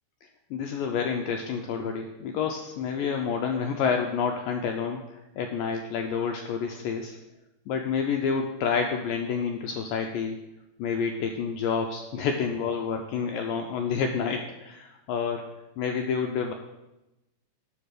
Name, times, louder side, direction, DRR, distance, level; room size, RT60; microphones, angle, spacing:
voice 1, 0.5-5.0 5.4-7.2 7.7-10.4 10.8-15.4 15.8-16.5, left 6 dB, 85° left, 3 dB, 2.0 m, -29 dB
10.0 x 5.7 x 6.5 m, 0.96 s
omnidirectional pair, 4.7 m